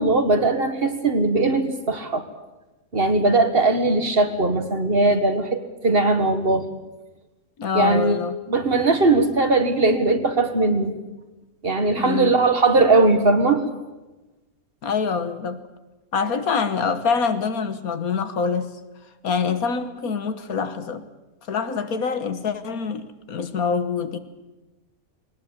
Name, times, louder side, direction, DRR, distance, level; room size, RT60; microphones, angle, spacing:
voice 1, 0.0-2.2 2.9-6.7 7.7-11.0 11.6-13.7, right 2 dB, 40° right, 1.8 m, -19 dB
voice 2, 7.6-8.4 11.9-12.3 14.8-15.6 16.1-18.7 19.2-21.1 21.5-24.2, left 5 dB, 80° left, 1.8 m, -25 dB
21.0 x 19.0 x 8.8 m
omnidirectional pair, 1.5 m